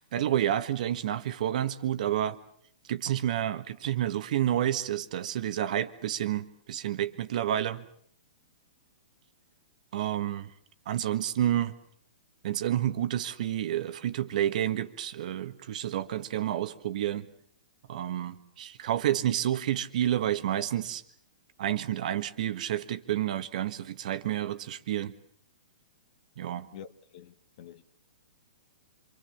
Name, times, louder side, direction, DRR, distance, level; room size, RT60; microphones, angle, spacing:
voice 1, 0.0-2.4 2.9-7.8 9.9-10.5 10.9-11.8 12.4-17.3 17.9-21.0 21.6-25.1 26.4-26.7, right 11 dB, 60° right, 1.6 m, -29 dB
voice 2, 27.1-27.8, left 9 dB, 50° left, 1.6 m, -46 dB
27.0 x 23.5 x 7.2 m
hypercardioid pair, 135°, 5 cm